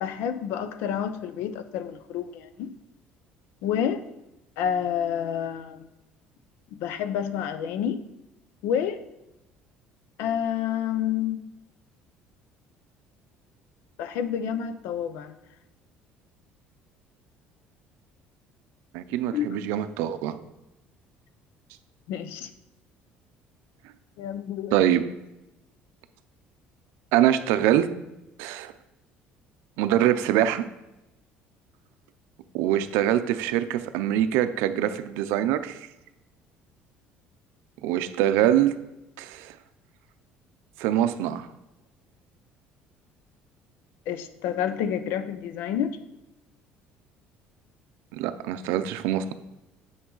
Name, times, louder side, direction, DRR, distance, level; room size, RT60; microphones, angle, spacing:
voice 1, 0.0-2.7 3.6-4.0 4.6-5.9 6.7-8.0 8.6-9.0 10.2-11.4 14.0-15.4 19.3-19.5 22.1-22.5 24.2-24.8 44.1-46.0, left 9 dB, 75° left, 0.6 m, -29 dB
voice 2, 18.9-20.4 24.7-25.0 27.1-27.9 28.4-28.7 29.8-30.6 32.5-35.8 37.8-38.8 39.2-39.5 40.8-41.5 48.1-49.3, right 11 dB, 90° right, 0.5 m, -24 dB
8.6 x 5.2 x 3.9 m
cardioid pair, 160°, 4 cm